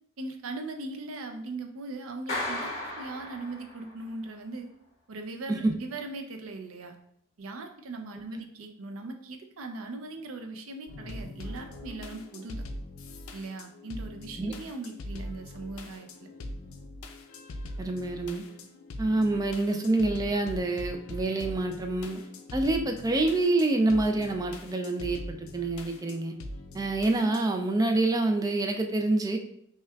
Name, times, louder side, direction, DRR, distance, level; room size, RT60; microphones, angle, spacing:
voice 1, 0.2-4.7 5.1-7.0 7.4-12.6 13.3-16.3, right 2 dB, 85° right, 5 dB, 0.5 m, -39 dB
Clapping, 2.3-4.0, left 1 dB, 35° left, 1.3 m, -35 dB
sound 1, 10.9-27.4, left 1 dB, 90° left, 0.4 m, -42 dB
voice 2, 17.8-18.4 19.0-22.2 22.5-26.3 26.7-29.4, right 2 dB, 20° right, 4 dB, 0.3 m, -27 dB
5.6 x 2.2 x 2.3 m, 0.70 s
head